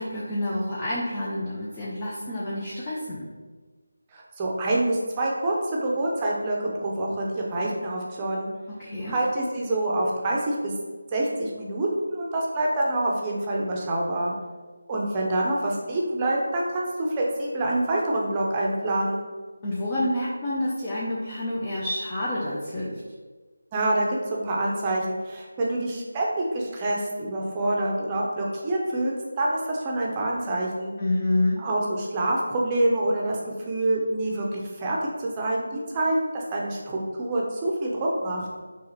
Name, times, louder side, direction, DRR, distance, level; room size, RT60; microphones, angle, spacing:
voice 1, 0.0-3.3 8.8-9.2 19.6-23.0 31.0-31.6, left 1 dB, 20° left, -7 dB, 0.6 m, -28 dB
voice 2, 4.1-8.5 9.1-10.7 11.1-14.3 14.9-19.2 23.7-30.9 31.6-33.4 33.7-38.5, right 1 dB, 20° right, -3 dB, 0.7 m, -26 dB
4.7 x 3.1 x 3.1 m, 1.4 s
figure-of-eight pair, 160°, 0 cm